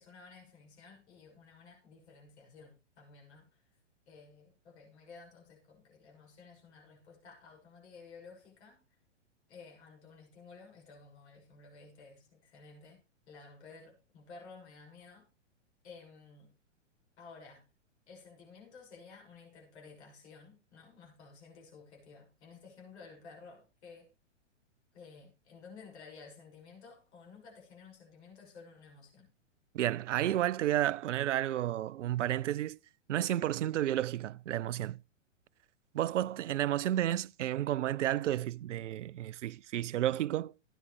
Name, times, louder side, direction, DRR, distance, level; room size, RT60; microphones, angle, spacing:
voice 1, 0.0-3.6 4.1-8.8 9.5-15.3 15.8-16.5 17.2-17.6 18.1-24.1 24.9-29.3, left 4 dB, 65° left, 6.7 m, -54 dB
voice 2, 29.7-32.8 33.1-35.0 35.9-40.5, right 12 dB, 75° right, 0.5 m, -31 dB
15.0 x 9.9 x 3.3 m
hypercardioid pair, 115°, 37 cm